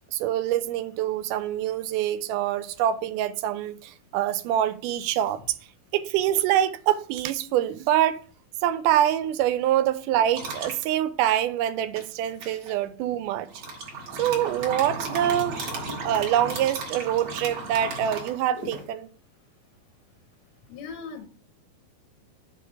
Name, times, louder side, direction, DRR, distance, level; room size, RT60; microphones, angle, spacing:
voice 1, 0.1-5.4 5.9-8.2 8.6-13.5 14.1-15.6 16.0-19.1, right 11 dB, 80° right, 1.9 m, -25 dB
sound 1, 10.3-10.8 12.0-12.7 13.5-18.8, right 3 dB, 50° right, 2.2 m, -34 dB
voice 2, 20.7-21.3, left 5 dB, 75° left, 1.6 m, -38 dB
6.4 x 3.6 x 5.6 m
omnidirectional pair, 4.2 m